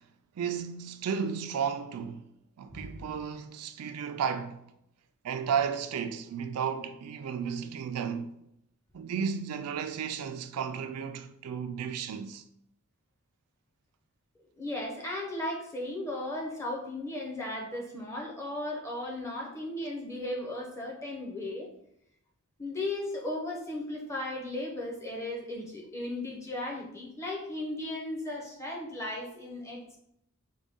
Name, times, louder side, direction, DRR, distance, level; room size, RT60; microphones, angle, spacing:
voice 1, 0.4-2.3 2.6-4.6 5.2-8.3 8.9-12.4, right 7 dB, 90° right, 0.4 m, -33 dB
voice 2, 2.7-3.1 14.6-21.7 22.6-30.0, left 1 dB, 15° left, 0.7 m, -36 dB
5.0 x 2.2 x 3.5 m
head